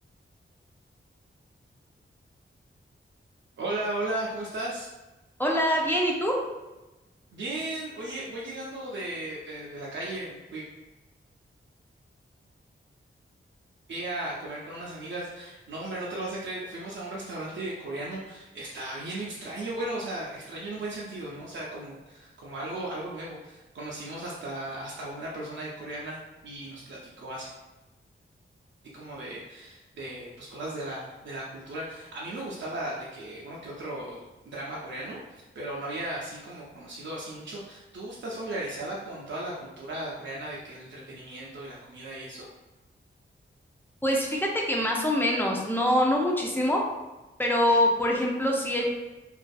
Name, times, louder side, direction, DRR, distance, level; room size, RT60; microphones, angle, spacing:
voice 1, 3.6-4.9 7.3-10.7 13.9-27.5 28.9-42.5, right 1 dB, 60° right, -5 dB, 0.5 m, -36 dB
voice 2, 5.4-6.4 44.0-46.8 47.4-48.8, left 1 dB, 10° left, -1 dB, 0.5 m, -24 dB
2.6 x 2.4 x 2.3 m, 1.1 s
cardioid pair, 55°, 21 cm